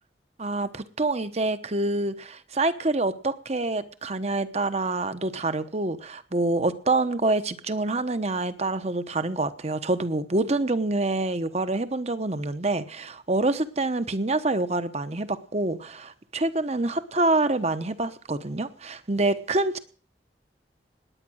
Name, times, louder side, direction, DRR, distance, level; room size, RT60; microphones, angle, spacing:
voice 1, 0.4-19.8, right 2 dB, 40° right, 11 dB, 1.0 m, -26 dB
19.0 x 9.6 x 6.3 m, 0.42 s
head